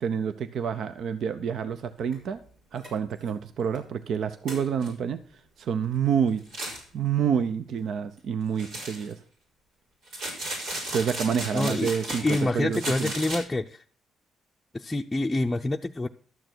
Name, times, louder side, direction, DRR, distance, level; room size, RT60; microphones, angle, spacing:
voice 1, 0.0-2.4 2.7-5.2 5.6-6.5 6.9-9.2 10.9-13.1, right 7 dB, 65° right, 12 dB, 0.7 m, -28 dB
sound 1, 2.1-2.2 2.8-2.9 3.3-3.4 3.7-3.8 4.5-4.9 6.4-6.8 8.6-9.1 10.1-12.4 12.7-13.4, right 1 dB, 85° right, 4.9 m, -35 dB
voice 2, 11.5-11.9 12.2-13.8 14.7-16.1, left 2 dB, 15° left, 2 dB, 0.6 m, -27 dB
12.0 x 6.8 x 6.2 m, 0.42 s
cardioid pair, 90°, 0 cm